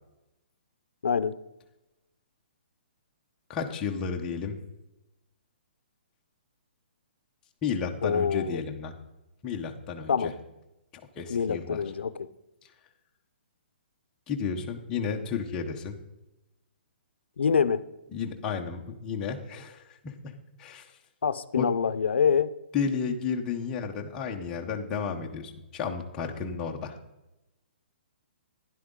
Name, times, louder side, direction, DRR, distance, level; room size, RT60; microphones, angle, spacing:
voice 1, 1.0-1.4 8.0-8.6 10.1-10.3 11.3-12.3 17.4-17.8 21.2-22.5, left 6 dB, 85° left, 14 dB, 0.6 m, -25 dB
voice 2, 3.5-4.6 7.6-8.9 9.4-10.3 11.2-11.8 12.6-12.7 14.3-16.0 18.1-21.0 21.5-21.7 22.7-27.0, left 6 dB, 10° left, 1 dB, 0.7 m, -32 dB
11.5 x 10.5 x 3.7 m, 0.96 s
hypercardioid pair, 180°, 6 cm